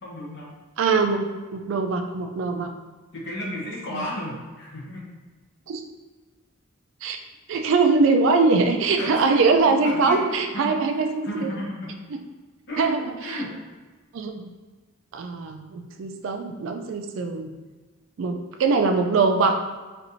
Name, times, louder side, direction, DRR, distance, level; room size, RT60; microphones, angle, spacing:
voice 1, 0.0-0.5 3.1-5.1 8.9-12.0 12.7-12.9 13.2-13.6, equal, 55° left, -4 dB, 0.8 m, -34 dB
voice 2, 0.8-2.7 3.9-4.0 5.7-5.8 7.0-7.2 7.5-11.5 12.8-13.4 14.1-14.5 15.1-17.5 18.2-19.6, right 4 dB, 65° right, 5 dB, 0.3 m, -22 dB
4.2 x 2.5 x 2.6 m, 1.3 s
head